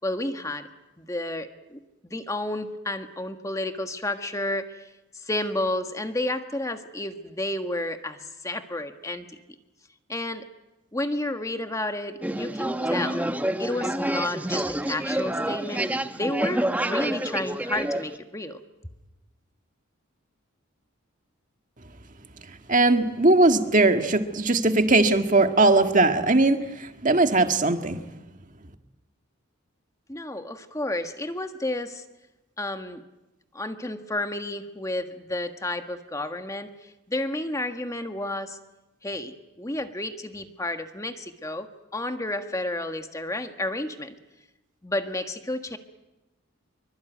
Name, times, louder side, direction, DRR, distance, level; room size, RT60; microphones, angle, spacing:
voice 1, 0.0-0.7 1.0-4.9 5.1-9.3 10.1-10.4 10.9-13.3 13.6-15.8 16.1-18.6 30.1-32.0 32.6-33.0 33.5-38.6 39.0-44.1 44.8-45.8, left 1 dB, 15° left, 7 dB, 1.5 m, -31 dB
sound 1, 12.2-18.2, right 1 dB, 10° right, 0.9 m, -28 dB
voice 2, 22.7-28.0, right 2 dB, 40° right, 7 dB, 1.8 m, -20 dB
25.5 x 24.0 x 9.2 m, 0.99 s
head